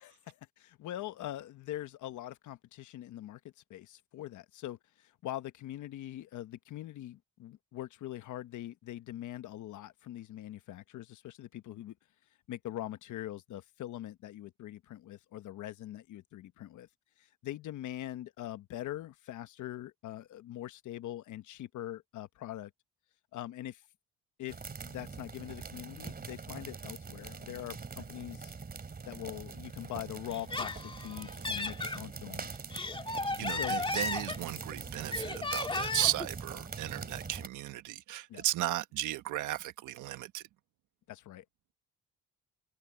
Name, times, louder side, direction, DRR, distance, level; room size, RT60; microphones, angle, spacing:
voice 1, 0.0-3.4 3.7-11.9 12.5-16.9 17.2-22.7 23.3-23.8 24.4-24.6 24.8-28.5 29.1-32.5 33.4-33.8 38.3-38.4 41.1-41.4, left 13 dB, 80° left, 1.2 m, -43 dB
sound 1, 24.5-37.5, right 4 dB, 30° right, 2.8 m, -43 dB
Laughter, 30.3-32.0 32.5-34.7 35.1-36.3, left 3 dB, 15° left, 1.9 m, -35 dB
voice 2, 33.4-40.4, right 14 dB, 85° right, 1.3 m, -35 dB
open air
cardioid pair, 90°, 30 cm